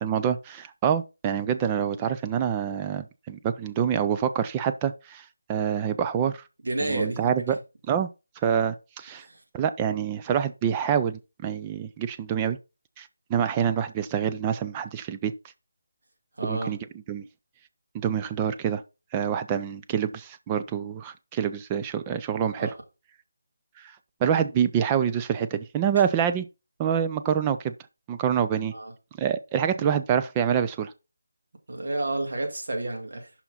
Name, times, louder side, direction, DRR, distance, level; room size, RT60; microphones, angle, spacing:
voice 1, 0.0-5.2 5.5-6.4 6.8-7.6 7.9-8.1 8.4-9.3 9.5-12.6 13.0-15.3 16.4-16.8 17.1-17.2 17.9-18.8 19.1-22.7 24.2-26.5 26.8-27.7 28.1-28.7 29.2-30.9, right 8 dB, 15° right, 0.3 m, -26 dB
voice 2, 6.6-7.6 9.2-9.4 16.4-16.7 22.6-22.7 28.7-28.9 29.7-30.0 31.7-33.3, right 2 dB, 55° right, 2.2 m, -31 dB
5.6 x 4.6 x 5.5 m
figure-of-eight pair, 170°, 0 cm